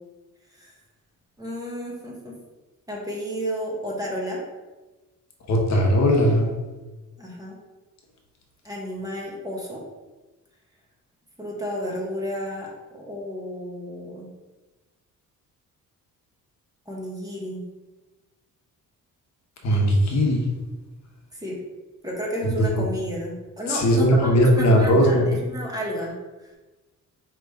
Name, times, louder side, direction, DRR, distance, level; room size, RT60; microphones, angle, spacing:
voice 1, 1.4-2.3 2.9-4.4 7.2-7.6 8.6-9.8 11.4-14.3 16.9-17.6 21.3-21.6 22.0-26.5, equal, 10° right, -4 dB, 0.9 m, -32 dB
voice 2, 5.5-6.5 19.6-20.5 22.6-22.8 23.7-25.3, equal, 55° left, 0 dB, 0.9 m, -19 dB
4.9 x 3.0 x 3.4 m, 1.2 s
cardioid pair, 150°, 33 cm